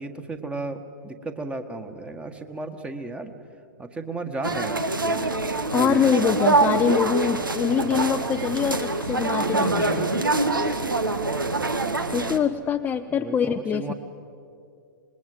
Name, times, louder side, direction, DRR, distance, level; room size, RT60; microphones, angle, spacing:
voice 1, 0.0-3.3 3.8-5.3 5.8-6.0 13.1-13.9, right 2 dB, 10° right, 8 dB, 1.7 m, -34 dB
sound 1, 4.4-12.4, right 3 dB, 85° right, 1.7 m, -24 dB
voice 2, 5.7-10.2 12.1-13.9, left 7 dB, 15° left, 7 dB, 0.6 m, -24 dB
26.5 x 21.0 x 8.0 m, 2.5 s
figure-of-eight pair, 110°, 11 cm